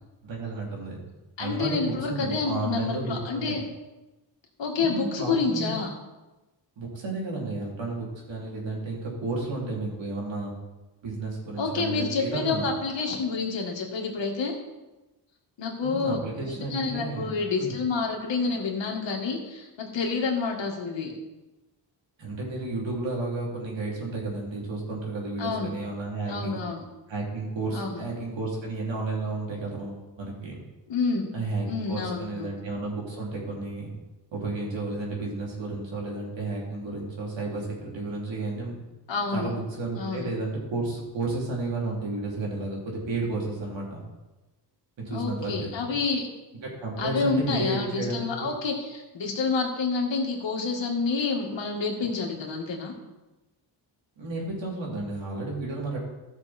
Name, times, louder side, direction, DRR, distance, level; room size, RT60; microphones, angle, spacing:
voice 1, 0.2-1.0 1.4-3.6 4.8-5.8 6.8-10.5 11.0-12.7 15.8-17.3 17.6-17.7 22.2-26.6 27.1-30.6 31.3-33.9 34.3-38.7 39.3-44.0 45.0-46.0 46.6-48.3 54.2-56.0, right 2 dB, 80° right, -3 dB, 3.5 m, -32 dB
voice 2, 1.4-3.6 4.6-5.9 11.6-14.5 15.6-21.1 25.4-25.7 26.3-26.8 27.7-28.0 30.9-31.3 31.7-32.5 39.1-39.5 40.0-40.3 45.1-46.3 47.0-53.0, left 4 dB, 75° left, 1 dB, 2.1 m, -28 dB
15.0 x 6.4 x 4.4 m, 1.1 s
wide cardioid pair, 105°, 44 cm